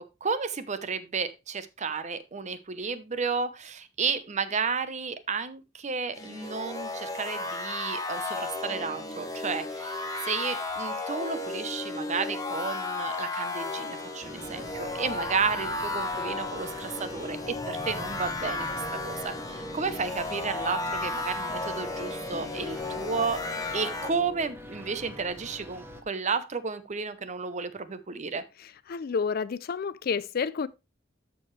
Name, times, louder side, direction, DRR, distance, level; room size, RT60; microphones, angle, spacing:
voice 1, 0.2-23.4 23.7-28.4, right 5 dB, 40° right, 0.8 m, -32 dB
sound 1, 6.1-24.1, left 2 dB, 20° left, 1.2 m, -34 dB
sound 2, 14.2-26.0, equal, 15° right, 1.1 m, -43 dB
voice 2, 28.9-30.7, left 5 dB, 55° left, 0.4 m, -29 dB
13.0 x 4.7 x 3.2 m
head